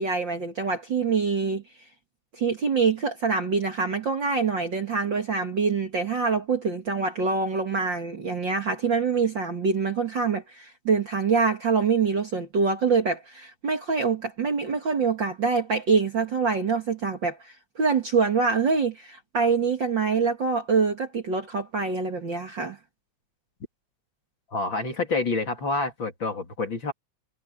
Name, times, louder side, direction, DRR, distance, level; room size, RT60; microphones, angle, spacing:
voice 1, 0.0-1.6 2.4-22.8, right 5 dB, 40° right, 2.3 m, -25 dB
voice 2, 24.5-26.9, left 3 dB, 40° left, 3.2 m, -28 dB
omnidirectional pair, 3.6 m